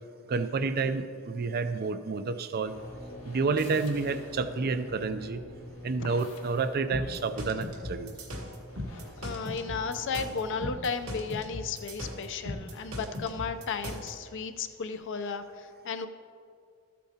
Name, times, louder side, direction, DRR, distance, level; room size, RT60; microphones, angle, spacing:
voice 1, 0.3-2.7 3.3-5.4 5.8-8.1, right 4 dB, 45° right, 11 dB, 0.4 m, -29 dB
sound 1, 2.7-10.7, left 1 dB, 80° left, 1.4 m, -46 dB
sound 2, 6.9-14.1, left 1 dB, 75° right, 1.6 m, -38 dB
voice 2, 8.9-16.1, left 5 dB, 55° left, 9 dB, 0.5 m, -34 dB
13.5 x 8.3 x 2.8 m, 2.3 s
head